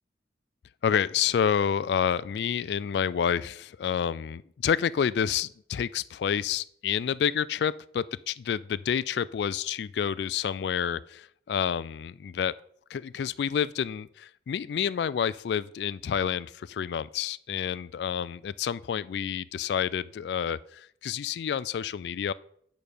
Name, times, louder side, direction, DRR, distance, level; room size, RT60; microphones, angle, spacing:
voice 1, 0.8-12.5 12.9-22.3, left 8 dB, 75° left, 17 dB, 0.3 m, -29 dB
8.9 x 5.2 x 6.6 m, 0.65 s
head